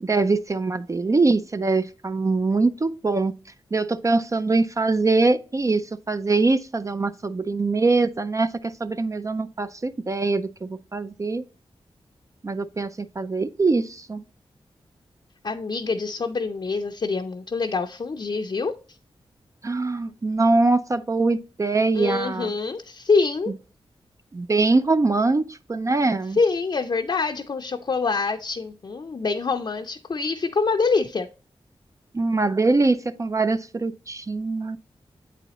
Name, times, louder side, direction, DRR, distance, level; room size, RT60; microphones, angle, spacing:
voice 1, 0.0-3.3 3.7-11.4 12.4-14.2 19.6-22.5 24.3-26.4 32.1-34.8, right 3 dB, 30° right, 0.4 m, -23 dB
voice 2, 15.4-18.7 21.9-23.5 26.3-31.3, left 4 dB, 45° left, 0.5 m, -25 dB
8.2 x 4.1 x 2.8 m
wide cardioid pair, 70°, 10 cm